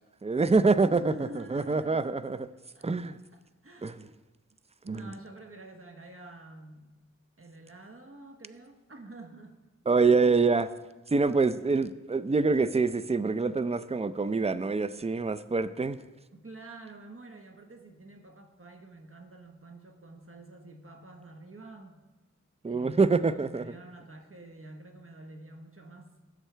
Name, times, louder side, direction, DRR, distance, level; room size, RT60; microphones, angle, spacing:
voice 1, 0.2-1.1 1.5-2.5 2.8-3.2 3.8-3.9 4.9-5.1 9.9-10.7 11.1-16.0 22.6-23.6, right 4 dB, 20° right, 13 dB, 0.5 m, -25 dB
voice 2, 0.8-2.1 2.7-4.0 4.8-7.0 7.4-9.6 16.3-22.0 22.7-26.1, right 2 dB, 45° right, 4 dB, 1.2 m, -48 dB
16.0 x 7.4 x 3.4 m, 1.2 s
wide cardioid pair, 50°, 30 cm